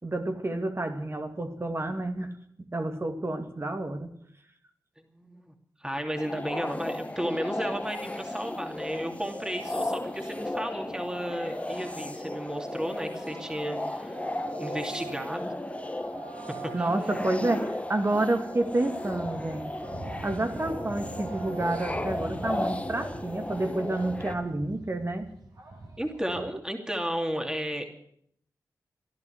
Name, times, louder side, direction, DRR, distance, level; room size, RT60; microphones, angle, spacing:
voice 1, 0.0-2.3 2.7-4.1 16.7-19.7 20.2-25.3 26.4-26.5, right 2 dB, 35° right, 7 dB, 2.3 m, -29 dB
voice 2, 5.1-5.5 5.8-14.2 14.6-15.5 16.5-17.2 26.0-27.9, equal, 10° right, 4 dB, 2.7 m, -33 dB
sound 1, 6.2-24.3, left 1 dB, 15° left, 1.5 m, -35 dB
sound 2, 8.9-26.4, right 3 dB, 65° right, 4.8 m, -44 dB
15.0 x 11.0 x 8.0 m, 0.68 s
cardioid pair, 45°, 7 cm